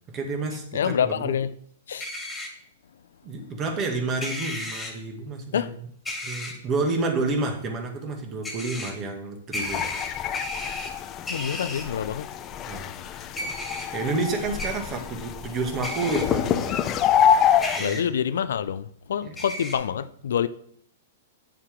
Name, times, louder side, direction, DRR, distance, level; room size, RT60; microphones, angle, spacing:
voice 1, 0.1-1.4 3.2-5.9 6.2-9.8 12.7-12.9 13.9-16.8 17.8-18.0 19.2-19.4, right 3 dB, 30° right, 2.0 m, -29 dB
voice 2, 0.7-1.5 1.9-2.1 5.5-5.7 11.3-12.3 17.8-20.5, left 8 dB, 75° left, 0.5 m, -26 dB
sound 1, 2.0-2.5 4.2-4.9 6.0-6.5 8.4-8.9 9.5-10.9 11.2-11.8 13.3-13.8 14.6-14.7 15.8-16.2 17.6-18.0 19.4-19.8, left 1 dB, 10° left, 2.4 m, -33 dB
sound 2, 9.6-17.8, left 9 dB, 30° left, 0.6 m, -26 dB
8.7 x 6.7 x 3.7 m
hypercardioid pair, 115°, 0 cm